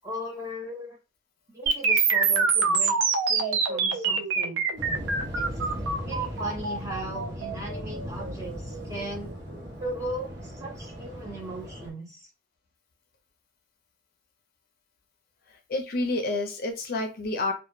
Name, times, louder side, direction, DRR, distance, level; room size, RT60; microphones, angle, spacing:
voice 1, 0.0-1.0 1.5-3.0 3.3-4.6 5.3-5.5 6.0-9.3 9.8-12.3, right 1 dB, 15° right, -1 dB, 0.7 m, -37 dB
sound 1, 1.7-9.6, right 5 dB, 80° right, 0.4 m, -26 dB
Waves surf, 4.8-11.9, equal, 65° right, 0.8 m, -37 dB
voice 2, 15.7-17.5, left 2 dB, 55° left, 5 dB, 0.4 m, -29 dB
2.1 x 2.0 x 3.0 m, 0.29 s
head